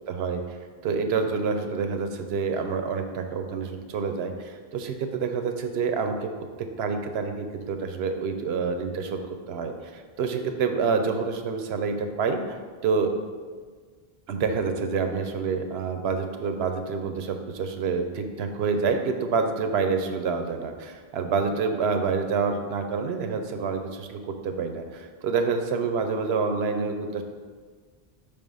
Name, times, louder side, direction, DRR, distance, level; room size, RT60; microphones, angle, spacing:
voice 1, 0.1-0.6 0.8-6.3 6.6-13.1 14.3-27.2, right 5 dB, 85° right, 6 dB, 0.9 m, -27 dB
5.4 x 3.5 x 5.3 m, 1.6 s
omnidirectional pair, 1.1 m